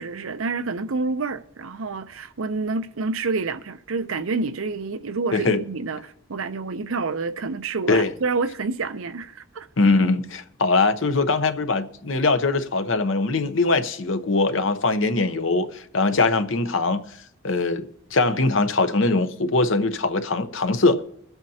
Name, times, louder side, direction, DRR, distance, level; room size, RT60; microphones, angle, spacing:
voice 1, 0.0-9.7, right 4 dB, 80° right, 0.7 m, -28 dB
voice 2, 9.8-17.0 17.4-17.8 18.1-21.0, left 3 dB, 70° left, 0.9 m, -21 dB
22.0 x 8.0 x 2.8 m
head